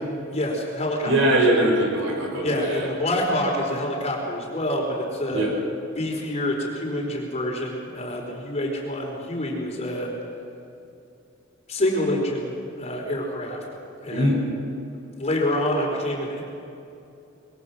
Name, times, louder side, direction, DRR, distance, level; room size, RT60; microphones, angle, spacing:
voice 1, 0.3-1.1 2.4-5.5 5.9-10.1 11.7-13.6 14.0-14.4 15.2-16.4, left 1 dB, 35° left, 0 dB, 4.6 m, -27 dB
voice 2, 1.0-2.9 5.3-5.5 14.1-14.4, right 1 dB, 70° right, 0 dB, 6.5 m, -21 dB
24.5 x 22.0 x 6.3 m, 2.7 s
head